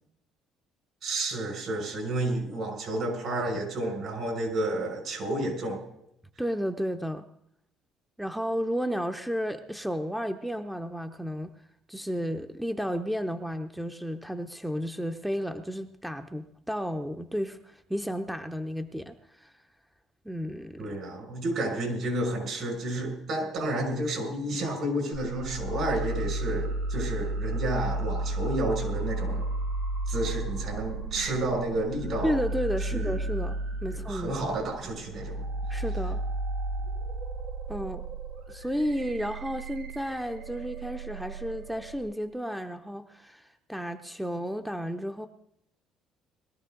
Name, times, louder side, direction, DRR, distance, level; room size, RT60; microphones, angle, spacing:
voice 1, 1.0-5.8 20.8-29.4 30.1-32.4 32.9-33.1 33.9-35.4, right 1 dB, 60° right, 1 dB, 5.9 m, -31 dB
voice 2, 6.4-7.3 8.2-11.5 11.9-19.5 20.2-21.0 32.2-34.3 35.7-36.2 37.7-38.0 38.5-45.3, equal, 5° right, 7 dB, 0.7 m, -32 dB
sound 1, 25.1-42.0, right 2 dB, 90° right, 3.6 m, -33 dB
20.5 x 13.5 x 3.9 m, 0.77 s
cardioid pair, 100°, 0 cm